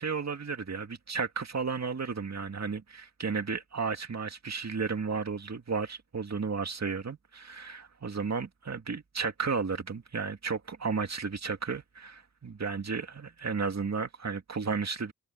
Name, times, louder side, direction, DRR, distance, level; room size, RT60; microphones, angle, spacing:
voice 1, 0.0-15.1, right 5 dB, 60° right, 2.2 m, -33 dB
cardioid pair, 65°, 31 cm